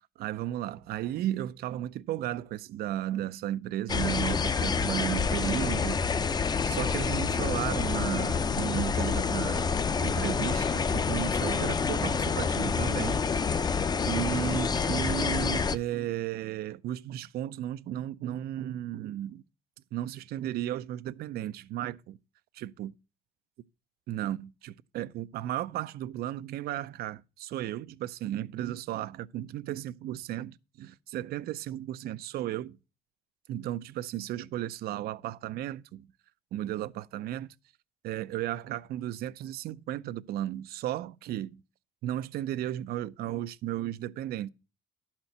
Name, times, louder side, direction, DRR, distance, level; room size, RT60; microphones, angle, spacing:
voice 1, 0.0-6.3 6.6-9.7 10.0-13.2 14.1-19.4 19.9-22.2 22.5-22.9 24.1-32.8 33.5-36.1 36.5-37.5 38.0-41.6 42.0-44.5, right 12 dB, 65° right, 0.5 m, -34 dB
sound 1, 3.9-15.8, left 5 dB, 25° left, 0.5 m, -28 dB
11.5 x 4.4 x 7.8 m
cardioid pair, 110°, 17 cm